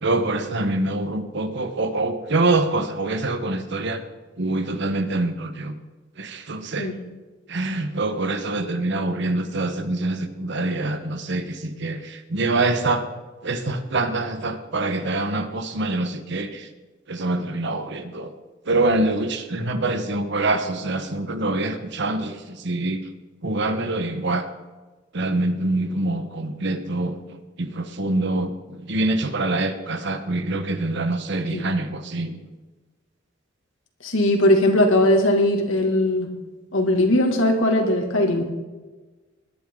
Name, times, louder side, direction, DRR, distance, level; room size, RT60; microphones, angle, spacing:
voice 1, 0.0-4.0 4.4-5.7 6.2-6.9 7.5-13.0 13.4-16.7 17.1-18.3 18.7-23.0 23.4-24.4 25.1-27.1 27.6-28.5 28.9-32.4, right 2 dB, 65° right, 8 dB, 1.3 m, -25 dB
voice 2, 34.0-36.3 36.7-38.5, left 1 dB, 85° left, 2 dB, 2.4 m, -19 dB
20.5 x 11.0 x 3.9 m, 1.3 s
head